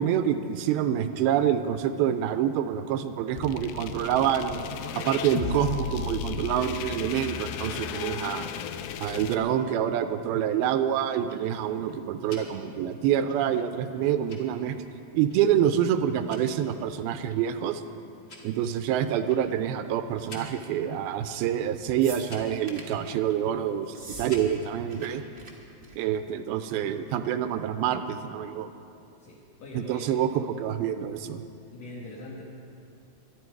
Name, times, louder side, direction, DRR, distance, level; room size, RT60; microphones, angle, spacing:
voice 1, 0.0-4.6 4.9-8.5 9.0-14.8 15.1-17.8 18.4-25.2 26.0-28.7 29.7-31.4, right 9 dB, 85° right, 9 dB, 2.5 m, -27 dB
sound 1, 3.4-9.4, left 8 dB, 80° left, 2.3 m, -34 dB
Tick-tock, 10.9-24.9, left 2 dB, 30° left, 1.5 m, -52 dB
sound 2, 22.0-23.0 23.9-24.3 24.6-25.1 25.3-25.5 25.8-26.1 27.1-27.2, right 3 dB, 65° right, 0.6 m, -43 dB
voice 2, 29.2-30.4 31.7-32.4, left 2 dB, 55° left, -3 dB, 2.3 m, -43 dB
24.0 x 10.5 x 4.7 m, 2.5 s
omnidirectional pair, 4.3 m